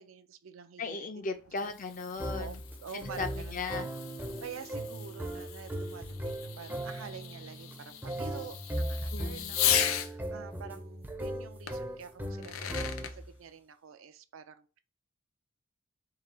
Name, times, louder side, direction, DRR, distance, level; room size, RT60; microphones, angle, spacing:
voice 1, 0.0-1.7 2.4-4.0 4.4-12.6 12.9-14.8, right 6 dB, 70° right, 0.4 m, -48 dB
voice 2, 0.8-2.6 2.9-3.9 9.1-9.6, left 4 dB, 40° left, 0.5 m, -37 dB
Fireworks, 1.3-10.1 11.7-11.8 12.3-13.1, left 10 dB, 90° left, 0.5 m, -36 dB
sound 1, 2.2-13.4, right 1 dB, 10° right, 0.5 m, -38 dB
3.8 x 2.3 x 4.2 m
head